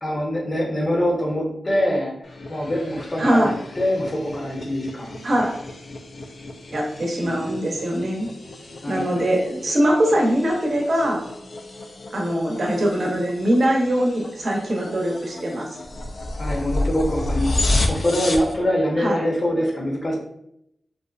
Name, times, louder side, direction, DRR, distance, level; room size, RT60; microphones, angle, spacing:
voice 1, 0.0-2.1 2.5-3.5 3.8-5.2 7.2-7.4 8.8-9.0 16.4-20.2, equal, 45° left, -1 dB, 0.8 m, -24 dB
sound 1, 2.2-18.5, left 2 dB, 65° left, 0.4 m, -31 dB
voice 2, 3.2-3.6 5.2-5.5 6.7-8.3 8.9-11.2 12.1-15.7 19.0-19.2, equal, 60° right, 0 dB, 0.7 m, -22 dB
2.6 x 2.1 x 2.4 m, 0.75 s
cardioid pair, 45°, 0 cm